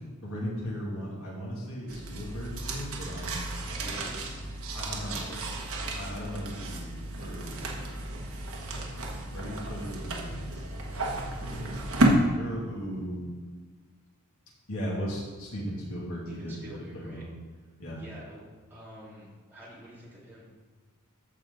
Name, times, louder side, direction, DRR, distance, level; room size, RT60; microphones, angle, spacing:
voice 1, 0.2-3.6 4.7-5.4 5.9-7.7 9.3-10.6 11.4-13.3 14.7-16.6 16.9-17.3 17.8-18.0, equal, 70° left, -5 dB, 2.7 m, -37 dB
sound 1, 1.9-12.1, right 2 dB, 65° right, 1.3 m, -32 dB
voice 2, 3.5-4.3 4.9-5.4 16.3-17.2 17.9-18.4 18.7-20.5, equal, 10° right, -10 dB, 3.0 m, -48 dB
13.5 x 4.9 x 4.0 m, 1.5 s
head